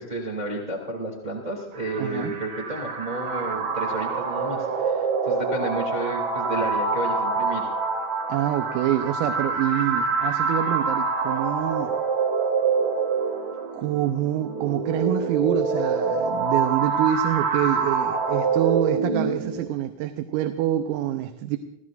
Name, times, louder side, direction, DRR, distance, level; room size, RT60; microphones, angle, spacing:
voice 1, 0.0-7.7, right 2 dB, 20° right, -2 dB, 1.0 m, -31 dB
sound 1, 1.7-19.7, right 4 dB, 65° right, 4.3 m, -26 dB
voice 2, 2.0-2.4 8.3-11.9 13.7-21.6, right 12 dB, 90° right, 6 dB, 3.4 m, -26 dB
29.5 x 16.0 x 2.5 m, 0.80 s
omnidirectional pair, 5.8 m